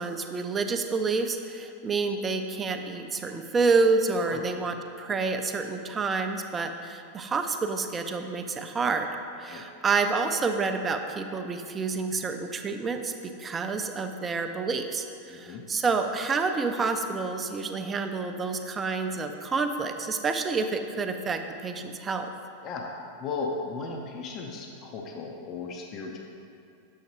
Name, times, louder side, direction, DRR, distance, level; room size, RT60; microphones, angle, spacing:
voice 1, 0.0-9.1 9.4-22.3, right 4 dB, 20° right, 7 dB, 0.4 m, -28 dB
voice 2, 15.3-15.6 22.6-22.9 23.2-26.2, left 4 dB, 35° left, 2 dB, 0.5 m, -36 dB
7.1 x 6.4 x 2.9 m, 2.5 s
figure-of-eight pair, 90°, 0 cm